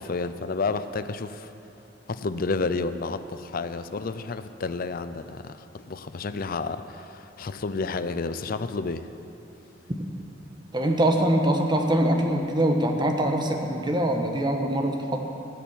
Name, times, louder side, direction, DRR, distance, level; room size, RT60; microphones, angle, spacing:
voice 1, 0.0-1.5 2.1-9.1, left 4 dB, 50° left, 11 dB, 0.5 m, -30 dB
voice 2, 10.7-15.2, right 1 dB, 25° right, 3 dB, 1.2 m, -23 dB
16.5 x 7.2 x 7.4 m, 2.8 s
head